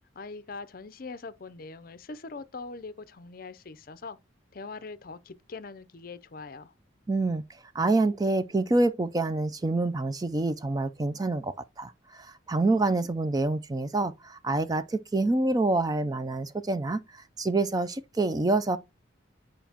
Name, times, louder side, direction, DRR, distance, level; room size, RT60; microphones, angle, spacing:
voice 1, 0.2-4.2 4.5-6.7, left 3 dB, 45° left, 0.5 m, -42 dB
voice 2, 7.1-18.8, right 2 dB, 20° right, 0.4 m, -27 dB
9.2 x 5.1 x 2.8 m
head